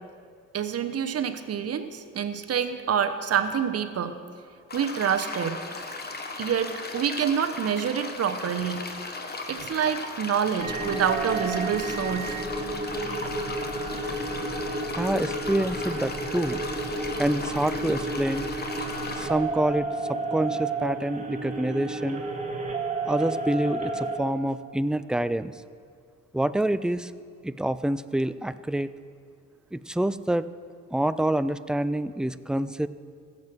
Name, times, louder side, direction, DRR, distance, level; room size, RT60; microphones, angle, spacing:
voice 1, 0.5-4.2 4.7-5.6 6.4-8.8 9.5-12.4, right 8 dB, 55° right, 10 dB, 1.0 m, -27 dB
sound 1, 4.7-19.3, left 3 dB, 35° left, 1.4 m, -37 dB
sound 2, 10.6-24.2, right 2 dB, 25° right, 2.0 m, -31 dB
voice 2, 14.9-16.6 17.2-18.4 19.2-22.2 23.1-25.5 26.3-27.1 27.4-28.9 29.7-30.5 30.9-32.9, right 1 dB, 5° right, 14 dB, 0.3 m, -27 dB
15.5 x 7.5 x 6.1 m, 2.1 s
cardioid pair, 90°, 30 cm